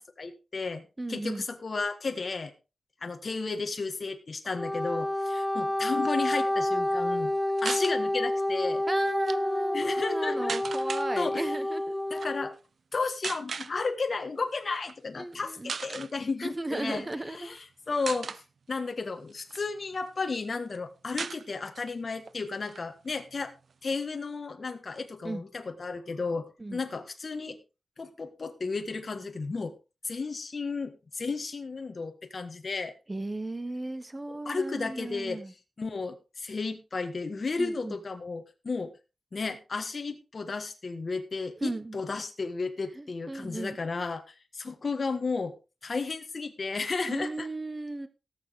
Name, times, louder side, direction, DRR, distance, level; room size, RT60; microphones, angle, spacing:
voice 1, 0.0-0.8 1.1-2.5 3.0-7.3 7.6-8.9 9.7-10.6 11.2-11.5 12.1-12.5 12.9-18.4 18.7-23.5 23.8-27.6 28.0-29.7 30.0-32.9 34.3-35.4 35.8-38.9 39.3-45.5 45.8-47.5, left 4 dB, 45° left, 6 dB, 1.6 m, -33 dB
voice 2, 1.0-1.4 8.9-12.0 15.2-15.7 16.4-17.5 25.2-25.4 26.6-26.8 33.1-35.5 37.6-38.0 41.6-42.0 42.9-43.8 47.1-48.1, right 2 dB, 20° right, 12 dB, 1.1 m, -35 dB
Wind instrument woodwind instrument, 4.5-12.5, left 1 dB, 10° left, 0.7 m, -29 dB
sound 1, 7.6-8.0 9.1-9.4 10.5-11.1 12.1-12.3 13.2-13.7 14.7-14.9 15.3-15.4 15.7-16.1 17.0-17.6 18.1-18.4 19.1-20.1 20.4-20.5 20.7-20.8 21.2-21.9 22.3-22.4 22.6-23.7, right 5 dB, 65° right, 0.5 m, -37 dB
18.0 x 7.1 x 3.6 m, 0.29 s
wide cardioid pair, 135°, 0 cm